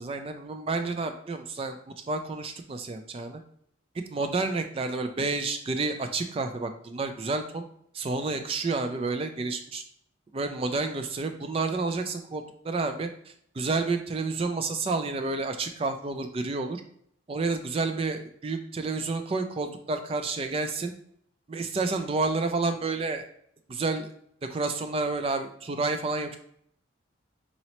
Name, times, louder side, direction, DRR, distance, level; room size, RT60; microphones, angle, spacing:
voice 1, 0.0-3.4 4.1-7.6 7.9-9.8 10.3-13.1 13.5-16.8 17.3-20.9 21.5-23.2 23.7-24.1 24.5-26.4, right 3 dB, 30° right, 7 dB, 0.3 m, -30 dB
4.1 x 2.9 x 2.9 m, 0.67 s
head